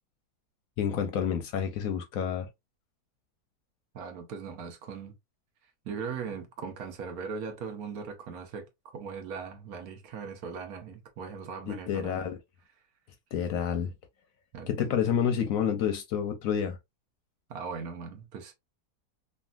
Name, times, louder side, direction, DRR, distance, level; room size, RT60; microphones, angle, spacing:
voice 1, 0.8-2.5 11.7-12.4 13.3-13.9 14.7-16.8, left 8 dB, 70° left, 0.9 m, -29 dB
voice 2, 3.9-5.1 5.8-8.7 8.9-12.3 14.5-14.8 17.5-18.5, right 5 dB, 70° right, 1.2 m, -39 dB
3.2 x 2.4 x 2.4 m
omnidirectional pair, 1.7 m